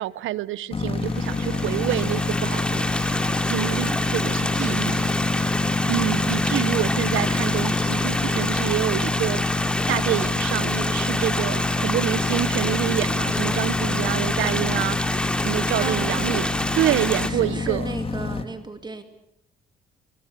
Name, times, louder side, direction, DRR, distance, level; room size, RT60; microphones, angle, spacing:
voice 1, 0.0-2.9 3.5-5.1 5.3-5.6 5.9-9.5 9.9-16.5 16.7-17.9, right 14 dB, 85° right, 19 dB, 0.8 m, -27 dB
sound 1, 0.7-18.4, left 3 dB, 30° left, 2.1 m, -26 dB
Stream, 1.0-17.3, left 1 dB, 5° left, 2.3 m, -27 dB
voice 2, 15.8-16.4 17.3-19.0, right 3 dB, 20° right, 8 dB, 2.3 m, -35 dB
24.0 x 22.5 x 6.8 m, 0.79 s
cardioid pair, 90°, 20 cm